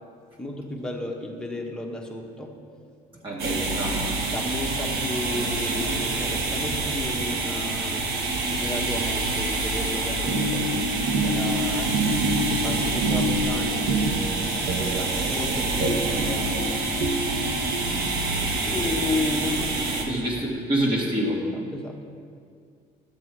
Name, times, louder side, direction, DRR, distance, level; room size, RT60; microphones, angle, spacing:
voice 1, 0.4-2.9 3.2-3.3 4.2-8.2 8.6-10.7 11.2-16.8 18.7-20.2 21.5-22.1, left 1 dB, 5° left, 0 dB, 1.3 m, -33 dB
voice 2, 3.2-4.0 20.1-21.4, right 1 dB, 30° right, -5 dB, 1.9 m, -26 dB
sound 1, 3.4-20.0, right 3 dB, 65° right, 1.5 m, -27 dB
sound 2, 10.2-18.5, right 1 dB, 90° right, 1.1 m, -28 dB
12.0 x 7.6 x 4.6 m, 2.3 s
cardioid pair, 110°, 17 cm